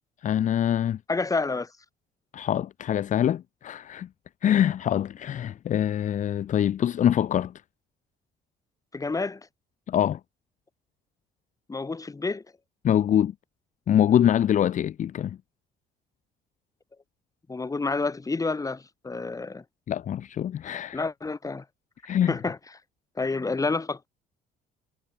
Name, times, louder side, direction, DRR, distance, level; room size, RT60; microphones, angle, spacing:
voice 1, 0.2-1.0 2.3-4.1 4.4-7.5 9.9-10.2 12.8-13.3 13.9-15.4 19.9-21.1 22.0-22.3, left 10 dB, 50° left, 0.9 m, -24 dB
voice 2, 1.1-1.7 8.9-9.4 11.7-12.4 17.5-19.6 20.9-21.6 22.3-22.6 23.2-24.1, left 3 dB, 20° left, 5.6 m, -29 dB
cardioid pair, 110°, 17 cm